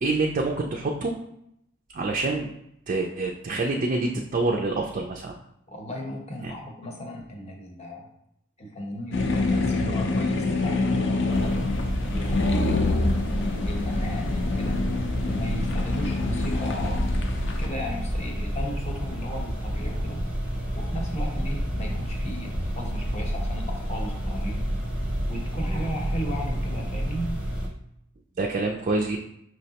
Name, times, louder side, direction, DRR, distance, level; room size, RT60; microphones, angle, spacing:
voice 1, 0.0-1.1 1.9-2.5 2.9-5.3 6.4-6.5 25.7-25.8 28.4-29.2, right 3 dB, 40° right, 0 dB, 0.4 m, -26 dB
voice 2, 5.7-8.1 8.6-11.6 12.0-13.2 13.6-14.8 15.2-17.2 17.6-20.2 20.8-24.7 25.3-27.4, equal, 30° left, 1 dB, 0.8 m, -35 dB
sound 1, 9.1-17.7, left 3 dB, 60° left, 0.5 m, -26 dB
sound 2, 11.3-27.7, equal, 5° right, 0.7 m, -30 dB
5.5 x 3.1 x 2.8 m, 0.76 s
head